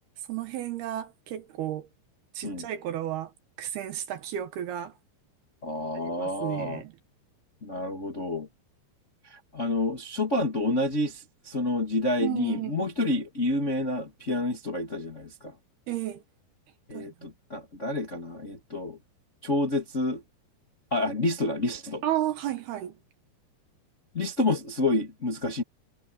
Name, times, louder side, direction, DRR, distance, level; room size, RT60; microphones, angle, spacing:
voice 1, 0.3-1.9 2.3-3.3 3.6-4.9 5.9-6.9 12.2-12.9 15.9-16.2 16.9-17.1 22.0-23.0, right 12 dB, 70° right, 3.0 m, -32 dB
voice 2, 5.6-6.8 7.6-8.5 9.3-15.5 16.9-19.0 19.4-20.2 20.9-22.0 24.1-25.6, left 2 dB, 30° left, 1.3 m, -29 dB
omnidirectional pair, 5.2 m